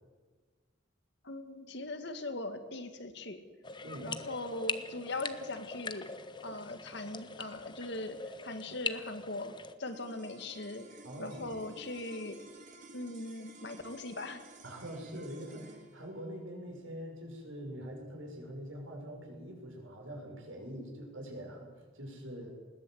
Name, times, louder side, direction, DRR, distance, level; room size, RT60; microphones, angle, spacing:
voice 1, 1.2-3.4 4.0-6.1 6.4-10.9 11.2-12.4 12.9-14.4, left 2 dB, 60° left, 8 dB, 2.0 m, -40 dB
sound 1, 3.6-9.7, left 4 dB, 25° left, 0.9 m, -42 dB
sound 2, 9.8-20.3, right 2 dB, 40° right, 3.1 m, -55 dB
voice 2, 11.0-11.6 14.6-22.5, equal, 85° right, 2 dB, 6.3 m, -44 dB
20.5 x 18.0 x 8.0 m, 1.4 s
head